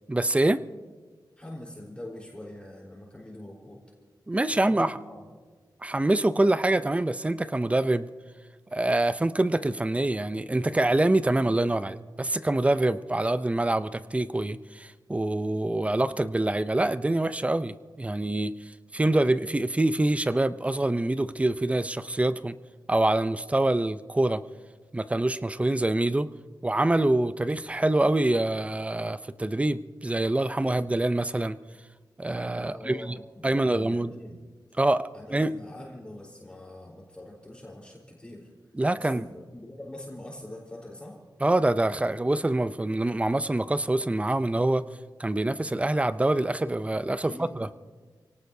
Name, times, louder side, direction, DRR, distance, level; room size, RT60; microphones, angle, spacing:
voice 1, 0.1-0.6 4.3-5.0 5.8-8.1 8.7-18.5 18.9-22.6 22.9-24.4 24.9-26.3 26.6-31.6 32.2-34.1 34.8-35.0 35.3-35.5 38.7-39.3 41.4-44.8 45.2-47.7, right 2 dB, 15° right, 13 dB, 0.5 m, -25 dB
voice 2, 1.4-3.8 4.5-5.3 32.6-34.4 35.1-38.5 39.0-41.2 47.2-47.5, left 1 dB, 15° left, -3 dB, 4.0 m, -43 dB
29.5 x 18.0 x 2.7 m, 1.4 s
wide cardioid pair, 110°, 8 cm